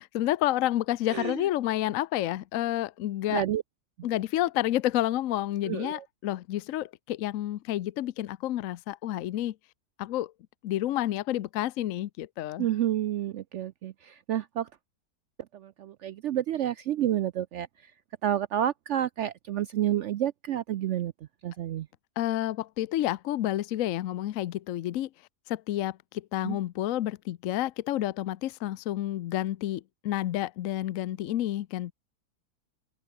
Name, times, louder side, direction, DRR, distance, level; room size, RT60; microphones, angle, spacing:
voice 1, 0.1-3.4 4.0-9.5 10.0-10.3 10.6-12.7 22.2-25.1 25.5-31.9, left 13 dB, 65° left, 0.9 m, -29 dB
voice 2, 1.1-1.5 3.3-3.6 5.7-6.0 12.6-14.7 15.5-17.9 18.2-21.1 21.4-21.9 26.4-26.6, right 11 dB, 80° right, 0.6 m, -30 dB
open air
omnidirectional pair, 1.8 m